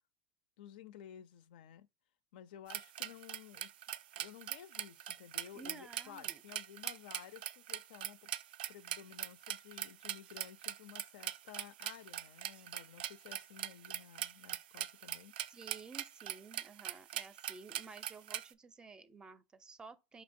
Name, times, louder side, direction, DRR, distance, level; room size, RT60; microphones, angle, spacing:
voice 1, 0.6-1.9 2.3-3.7 4.2-8.3 8.7-15.3, left 10 dB, 75° left, 0.4 m, -54 dB
sound 1, 2.7-18.5, right 13 dB, 80° right, 0.3 m, -42 dB
voice 2, 5.5-6.4 15.5-20.2, right 4 dB, 15° right, 0.5 m, -53 dB
5.2 x 2.8 x 2.6 m
supercardioid pair, 125°, 5 cm